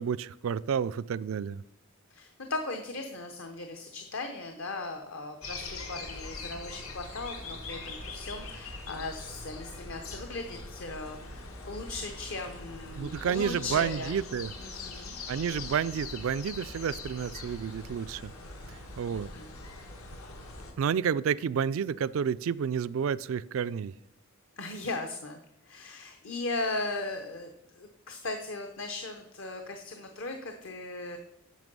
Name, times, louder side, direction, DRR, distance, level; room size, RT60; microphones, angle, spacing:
voice 1, 0.0-1.6 13.0-14.5 15.3-18.3 19.0-19.3 20.8-23.9, right 7 dB, 65° right, 18 dB, 0.3 m, -30 dB
voice 2, 2.1-14.1 14.6-15.2 19.1-19.5 24.6-25.4 25.6-31.2, left 2 dB, 60° left, 5 dB, 0.8 m, -38 dB
sound 1, 5.4-20.7, left 3 dB, 80° left, 1.6 m, -42 dB
9.3 x 6.0 x 5.3 m, 0.82 s
head